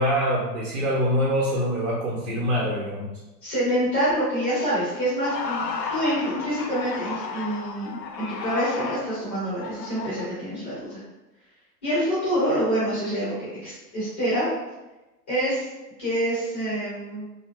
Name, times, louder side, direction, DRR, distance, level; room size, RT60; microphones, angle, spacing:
voice 1, 0.0-3.1, equal, 40° right, -6 dB, 0.6 m, -24 dB
voice 2, 3.4-11.0 11.8-14.5 15.3-15.7 16.0-17.3, equal, 10° left, -10 dB, 0.3 m, -26 dB
sound 1, 5.2-10.3, left 5 dB, 80° left, 0.6 m, -33 dB
2.8 x 2.4 x 2.2 m, 1.1 s
figure-of-eight pair, 100°, 49 cm